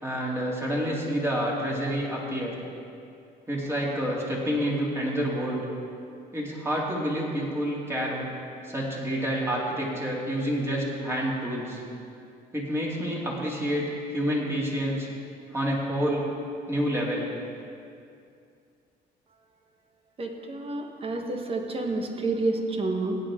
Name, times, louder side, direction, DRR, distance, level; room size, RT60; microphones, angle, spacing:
voice 1, 0.0-2.5 3.5-5.6 6.3-8.3 8.6-11.8 12.5-15.1 15.5-16.2 16.7-17.3, equal, 15° right, -4 dB, 2.8 m, -28 dB
voice 2, 20.2-23.2, right 2 dB, 35° right, 3 dB, 1.4 m, -29 dB
16.0 x 9.4 x 3.8 m, 2.4 s
cardioid pair, 110°, 17 cm